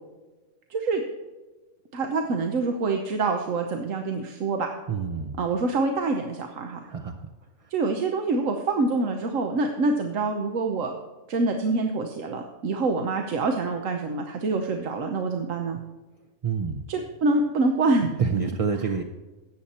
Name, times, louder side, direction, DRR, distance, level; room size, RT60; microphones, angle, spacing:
voice 1, 0.7-1.0 1.9-4.7 5.4-6.8 7.7-10.9 11.3-15.8 16.9-18.2, right 3 dB, 80° right, 4 dB, 1.3 m, -26 dB
voice 2, 4.9-5.4 6.8-7.3 7.6-7.7 16.4-16.9 18.2-19.0, right 5 dB, 40° right, 4 dB, 0.5 m, -28 dB
14.0 x 8.7 x 4.3 m, 1.2 s
omnidirectional pair, 1.3 m